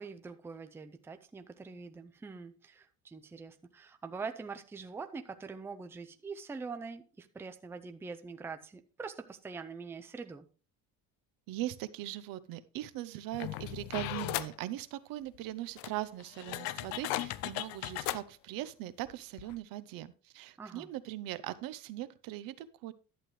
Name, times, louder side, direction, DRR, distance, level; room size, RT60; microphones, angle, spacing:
voice 1, 0.0-10.5 20.6-20.9, right 4 dB, 5° right, 0.4 m, -44 dB
voice 2, 11.5-22.9, right 14 dB, 75° right, 0.8 m, -40 dB
sound 1, 13.3-14.6 15.4-15.5 15.8-18.2 19.1-19.2 19.4-19.6, left 15 dB, 85° left, 0.6 m, -37 dB
11.5 x 7.6 x 3.2 m
cardioid pair, 140°, 34 cm